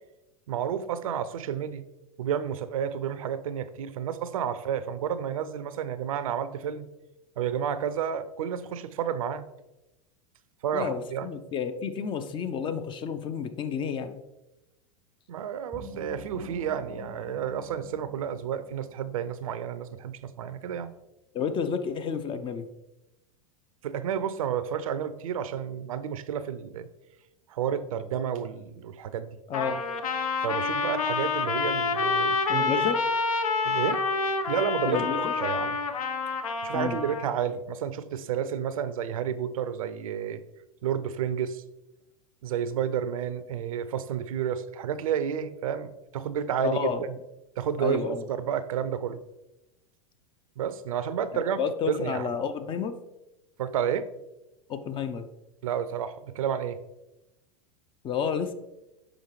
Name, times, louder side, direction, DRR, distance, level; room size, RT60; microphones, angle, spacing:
voice 1, 0.5-1.9 2.2-6.9 7.4-9.5 10.6-11.3 15.3-20.9 23.8-26.9 27.5-29.4 30.4-32.7 33.6-34.0 34.5-35.8 36.6-40.4 40.8-41.6 42.4-47.1 47.6-49.2 50.6-51.6 51.9-52.3 53.6-54.1 55.6-56.8, right 8 dB, 65° right, 14 dB, 0.5 m, -31 dB
voice 2, 10.7-14.2 21.3-22.7 29.5-29.8 32.5-33.0 34.9-35.3 36.7-37.0 46.6-47.0 47.8-48.2 51.3-53.0 54.7-55.3 58.0-58.5, left 6 dB, 25° left, 10 dB, 0.5 m, -30 dB
sound 1, 15.7-19.3, equal, ahead, 0.8 m, -46 dB
Trumpet, 29.5-37.3, left 4 dB, 70° left, 0.6 m, -28 dB
6.3 x 5.0 x 3.1 m, 0.95 s
figure-of-eight pair, 90°, 19 cm